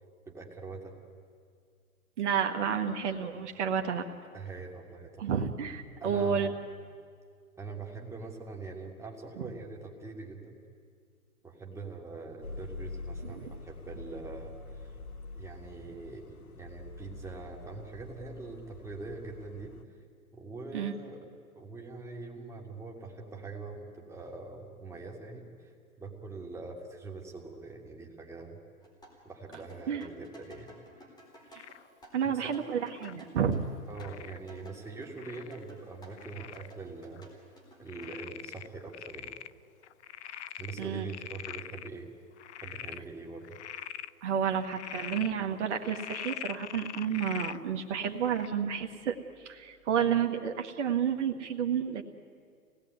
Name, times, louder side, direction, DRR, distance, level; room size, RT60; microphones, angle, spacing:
voice 1, 0.3-0.9 4.3-5.3 6.0-6.5 7.6-10.6 11.4-15.0 15.4-19.8 20.3-21.2 21.6-25.7 26.0-28.6 29.2-30.7 32.2-32.6 33.9-37.3 37.8-39.3 40.6-42.1 42.6-43.5, right 3 dB, 5° right, -1 dB, 2.6 m, -43 dB
voice 2, 2.2-4.1 5.2-6.5 9.4-9.5 13.2-13.6 20.7-20.9 29.9-30.1 31.5-31.6 32.1-33.7 40.8-41.1 44.2-49.2 49.4-52.0, right 7 dB, 50° right, 3 dB, 1.8 m, -30 dB
sound 1, 12.4-19.8, left 3 dB, 75° left, 1.4 m, -45 dB
sound 2, 28.8-36.3 36.5-38.1, right 1 dB, 10° left, 4.1 m, -54 dB
Frog, 31.5-31.9 32.8-33.2 33.9-34.4 35.2-35.6 36.2-36.7 37.2-37.3 37.9-39.5 39.8-41.9 42.4-43.0 43.4-44.1 44.6-45.3 45.8-47.6 48.2-48.5, left 10 dB, 50° left, 0.6 m, -42 dB
25.5 x 18.5 x 9.5 m, 2.1 s
hypercardioid pair, 135°, 44 cm